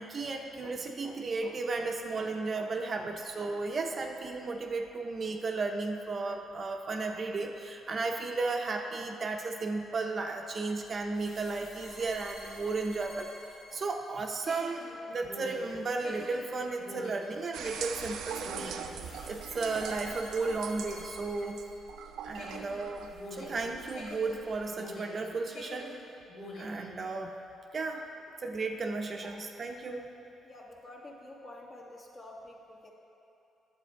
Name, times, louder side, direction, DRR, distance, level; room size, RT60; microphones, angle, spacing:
voice 1, 0.0-13.3 13.7-21.6 22.2-25.9 26.6-27.3 27.7-28.0 28.4-30.1, right 3 dB, 40° right, 3 dB, 0.6 m, -34 dB
sound 1, 11.1-22.0 22.3-25.2 25.5-26.8, left 1 dB, 70° left, 2.4 m, -47 dB
sound 2, 17.5-24.7, right 7 dB, 80° right, 0.5 m, -42 dB
voice 2, 30.4-32.9, left 1 dB, 40° left, -3 dB, 1.5 m, -49 dB
9.9 x 7.3 x 4.6 m, 3.0 s
cardioid pair, 115°, 0 cm